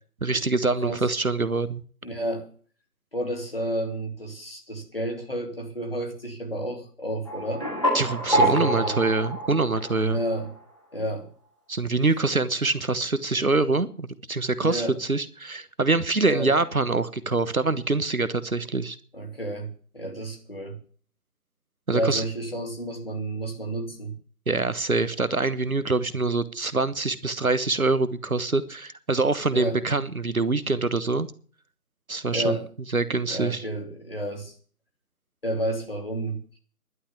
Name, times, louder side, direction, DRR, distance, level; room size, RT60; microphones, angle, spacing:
voice 1, 0.2-1.8 7.9-10.2 11.7-19.0 21.9-22.2 24.5-31.3 32.1-32.6 32.9-33.6, right 3 dB, 65° right, 15 dB, 1.2 m, -25 dB
voice 2, 2.0-2.5 3.1-7.7 8.3-9.0 9.9-10.5 10.9-11.3 14.6-14.9 16.2-16.5 19.1-20.8 21.9-24.1 29.5-29.8 32.3-32.7 33.3-34.5 35.4-36.4, right 1 dB, 40° left, 3 dB, 3.4 m, -31 dB
sound 1, 7.3-10.6, right 1 dB, 20° left, 2.4 m, -27 dB
11.5 x 8.7 x 9.9 m, 0.44 s
figure-of-eight pair, 175°, 46 cm